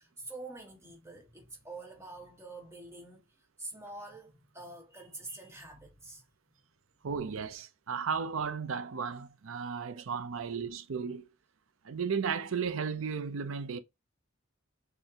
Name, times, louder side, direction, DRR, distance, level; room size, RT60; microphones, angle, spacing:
voice 1, 0.0-6.2 9.9-10.0, right 2 dB, 15° right, 1.3 m, -46 dB
voice 2, 7.0-11.3 11.8-13.8, right 6 dB, 75° right, 0.5 m, -34 dB
6.5 x 2.3 x 2.8 m
head